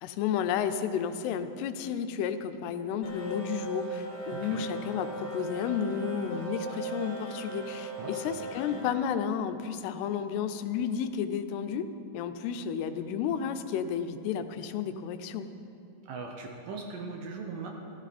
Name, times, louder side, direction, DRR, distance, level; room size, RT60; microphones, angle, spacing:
voice 1, 0.0-11.8 12.1-15.5, left 8 dB, 85° left, 9 dB, 2.7 m, -32 dB
sound 1, 3.0-8.8, right 2 dB, 35° left, 2.2 m, -38 dB
voice 2, 4.3-4.7 8.0-8.9 16.0-17.7, right 4 dB, 70° right, 2 dB, 2.3 m, -40 dB
15.5 x 14.0 x 4.2 m, 2.7 s
omnidirectional pair, 4.6 m